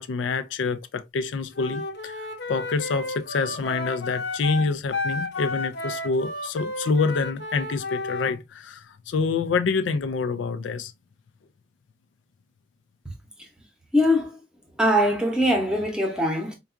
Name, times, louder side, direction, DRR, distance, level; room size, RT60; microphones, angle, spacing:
voice 1, 0.0-10.9, left 4 dB, 90° left, 0.4 m, -27 dB
Wind instrument woodwind instrument, 1.5-8.3, left 2 dB, 70° left, 0.8 m, -32 dB
voice 2, 13.9-14.4 14.8-16.5, equal, 5° right, 0.7 m, -22 dB
4.6 x 2.3 x 2.4 m
head